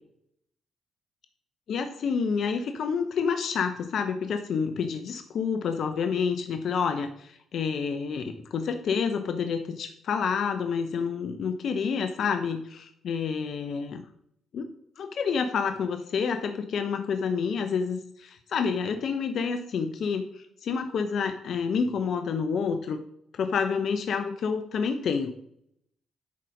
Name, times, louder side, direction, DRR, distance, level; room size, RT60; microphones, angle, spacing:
voice 1, 1.7-14.0 14.5-14.7 15.0-23.0 23.3-25.3, left 6 dB, 65° left, 7 dB, 0.7 m, -28 dB
10.0 x 4.1 x 5.2 m, 0.73 s
hypercardioid pair, 50°, 0 cm